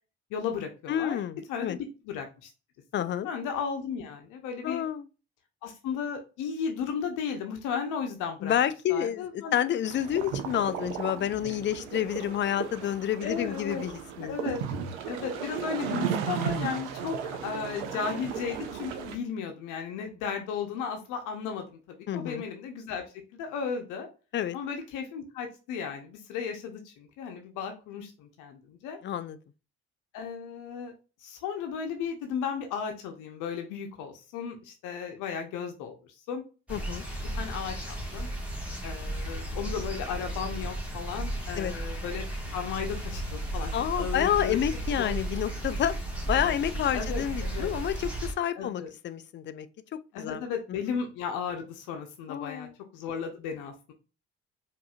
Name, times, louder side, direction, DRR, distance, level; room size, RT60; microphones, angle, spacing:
voice 1, 0.3-1.2 1.5-2.5 3.0-4.8 5.6-8.5 8.9-9.6 13.2-13.8 14.2-14.6 15.0-21.7 22.1-24.1 24.5-29.0 30.1-30.9 31.2-36.4 37.3-38.3 38.8-42.2 42.5-44.6 45.0-45.4 46.3-46.6 46.9-47.7 48.5-48.9 50.1-53.9, left 6 dB, 60° left, 0.8 m, -35 dB
voice 2, 0.9-1.8 2.9-3.3 4.6-5.1 8.4-14.5 22.1-22.4 24.3-24.6 29.0-29.4 36.7-37.1 41.6-41.7 43.7-46.0 46.3-49.7 50.1-50.4 52.3-52.7, left 10 dB, 35° left, 0.4 m, -29 dB
sound 1, 9.8-19.2, right 7 dB, 70° right, 0.6 m, -35 dB
sound 2, 36.7-48.3, right 1 dB, 5° right, 1.7 m, -34 dB
4.8 x 2.6 x 2.3 m
figure-of-eight pair, 40°, 34 cm